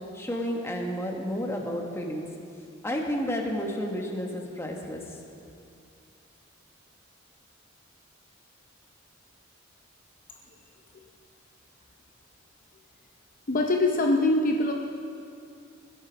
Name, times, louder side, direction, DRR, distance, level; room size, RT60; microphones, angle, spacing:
voice 1, 0.1-2.2 2.8-5.0, equal, 15° left, 0 dB, 1.3 m, -31 dB
voice 2, 13.5-14.7, left 2 dB, 45° left, 2 dB, 0.7 m, -23 dB
21.0 x 7.9 x 5.1 m, 2.5 s
head